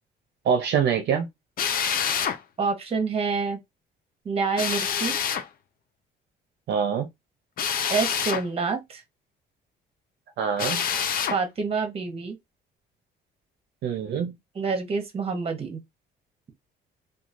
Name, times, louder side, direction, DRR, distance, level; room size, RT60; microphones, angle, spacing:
voice 1, 0.4-1.3 6.7-7.1 10.4-10.8 13.8-14.3, right 7 dB, 65° right, 0.6 m, -24 dB
Drill, 1.6-2.4 4.6-5.5 7.6-8.5 10.6-11.4, left 8 dB, 50° left, 0.5 m, -26 dB
voice 2, 2.6-3.6 4.2-5.1 7.9-9.0 11.3-12.4 14.5-15.8, right 4 dB, 30° right, 0.9 m, -27 dB
3.0 x 2.4 x 2.5 m
cardioid pair, 125°, 19 cm